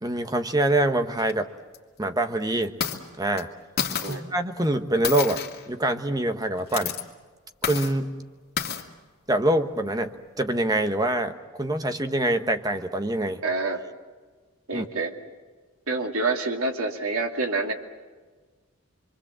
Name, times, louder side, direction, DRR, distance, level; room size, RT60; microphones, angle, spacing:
voice 1, 0.0-1.5 2.0-2.7 3.2-3.5 4.1-5.4 5.7-6.9 7.6-8.1 9.3-11.3 11.6-13.4 14.7-14.9, right 1 dB, 20° right, 7 dB, 1.2 m, -25 dB
sound 1, 1.2-1.3 1.7-1.8 2.6-3.0 3.4-3.5 3.8-4.2 5.0-5.7 6.6-7.0 7.6-7.9 8.6-8.8, left 7 dB, 45° left, 2.3 m, -29 dB
voice 2, 13.4-13.8 14.7-15.1 15.9-17.7, right 3 dB, 90° right, 3 dB, 2.6 m, -27 dB
27.0 x 24.0 x 7.6 m, 1.4 s
head